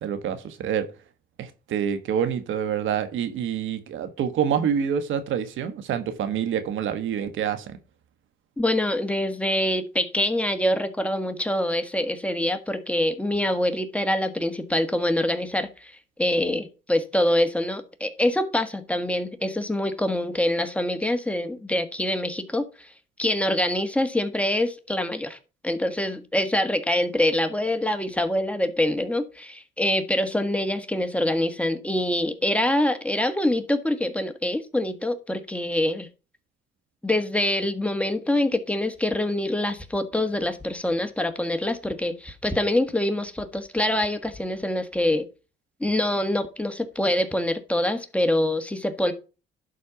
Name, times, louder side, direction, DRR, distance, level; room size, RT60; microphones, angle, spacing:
voice 1, 0.0-0.9 1.4-7.8, right 8 dB, 80° right, 1.3 m, -27 dB
voice 2, 8.6-15.9 16.2-22.9 23.2-25.4 25.6-36.1 37.0-45.3 45.8-49.1, left 1 dB, 5° left, 1.4 m, -25 dB
11.5 x 4.3 x 5.8 m
cardioid pair, 90°, 20 cm